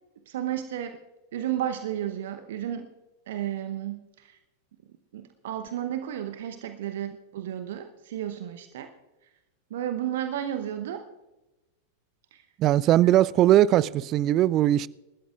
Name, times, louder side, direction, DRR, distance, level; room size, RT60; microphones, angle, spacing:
voice 1, 0.3-1.0 1.3-2.9 3.3-4.4 5.1-8.9 9.7-11.1 12.3-12.4, right 11 dB, 55° right, 0.8 m, -32 dB
voice 2, 12.6-14.9, right 13 dB, 35° right, 0.4 m, -20 dB
27.5 x 13.0 x 2.4 m
figure-of-eight pair, 90°, 0 cm